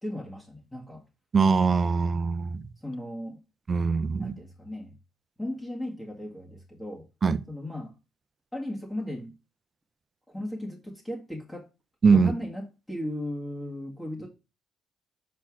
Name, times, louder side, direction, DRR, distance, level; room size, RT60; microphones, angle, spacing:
voice 1, 0.0-1.0 2.8-3.4 4.2-5.0 5.4-7.1 7.5-8.0 8.5-9.3 10.3-11.7 12.1-14.3, left 1 dB, 10° left, 1.8 m, -36 dB
voice 2, 1.3-2.6 3.7-4.3 7.2-7.4 12.0-12.3, right 5 dB, 40° right, 0.7 m, -22 dB
5.7 x 4.4 x 6.0 m
cardioid pair, 90°, 0 cm